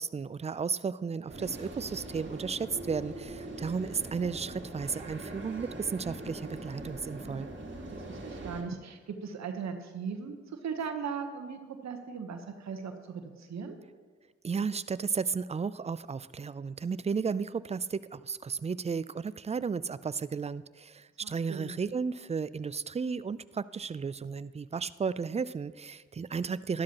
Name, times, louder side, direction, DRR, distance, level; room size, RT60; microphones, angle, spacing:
voice 1, 0.0-7.5 14.4-26.8, right 5 dB, 20° right, 17 dB, 0.4 m, -34 dB
sound 1, 1.3-8.6, right 1 dB, 40° right, 2.2 m, -42 dB
voice 2, 7.9-13.8 21.2-21.7, right 6 dB, 65° right, 6 dB, 1.1 m, -38 dB
12.0 x 12.0 x 3.0 m, 1.5 s
supercardioid pair, 40°, 29 cm